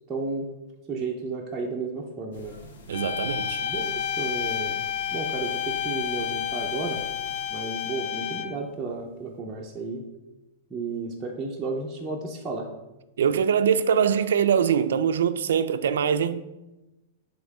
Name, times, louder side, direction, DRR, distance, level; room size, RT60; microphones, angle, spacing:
voice 1, 0.1-0.5 0.9-2.6 3.6-4.8 5.1-7.0 7.5-10.0 10.7-12.7, right 3 dB, 10° right, 0.5 m, -33 dB
sound 1, 2.3-7.5, left 1 dB, 75° left, 1.3 m, -44 dB
sound 2, 2.9-8.7, left 10 dB, 50° left, 0.5 m, -30 dB
voice 2, 2.9-3.6 13.2-16.5, right 7 dB, 85° right, 0.4 m, -23 dB
7.6 x 3.5 x 4.7 m
supercardioid pair, 180°, 0 cm